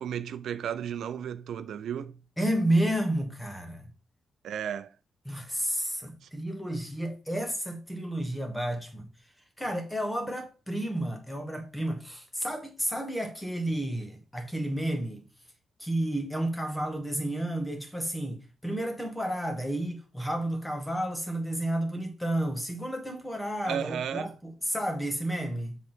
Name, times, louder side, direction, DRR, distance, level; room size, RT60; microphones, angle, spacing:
voice 1, 0.0-2.2 4.4-4.9 6.2-6.3 23.6-24.3, right 9 dB, 75° right, 0.5 m, -34 dB
voice 2, 2.4-3.9 5.2-9.1 9.6-15.2 15.8-25.8, right 1 dB, 5° left, 1.4 m, -31 dB
7.2 x 4.0 x 4.5 m
cardioid pair, 140°, 0 cm